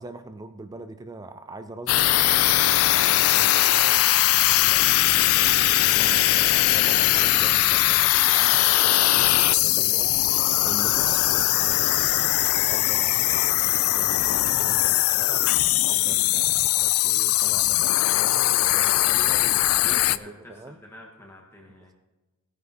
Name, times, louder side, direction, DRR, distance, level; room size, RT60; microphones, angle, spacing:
voice 1, 0.0-2.2 2.9-4.1 4.6-10.2 10.6-12.1 12.7-13.6 13.9-20.8, right 2 dB, 15° right, 9 dB, 0.4 m, -42 dB
sound 1, 1.9-20.2, left 15 dB, 80° left, 0.3 m, -20 dB
voice 2, 19.7-21.9, left 1 dB, 10° left, 0 dB, 1.2 m, -46 dB
18.0 x 9.3 x 2.7 m, 1.2 s
head